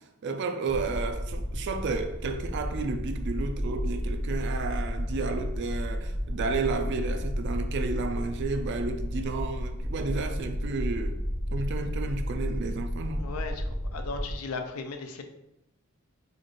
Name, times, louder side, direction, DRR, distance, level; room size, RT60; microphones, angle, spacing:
voice 1, 0.2-11.2 11.5-13.3, right 3 dB, 50° right, 7 dB, 0.3 m, -32 dB
sound 1, 0.7-14.4, equal, 40° left, 0.7 m, -32 dB
voice 2, 13.2-15.2, left 4 dB, 75° left, 6 dB, 0.5 m, -37 dB
4.1 x 2.4 x 3.1 m, 0.87 s
head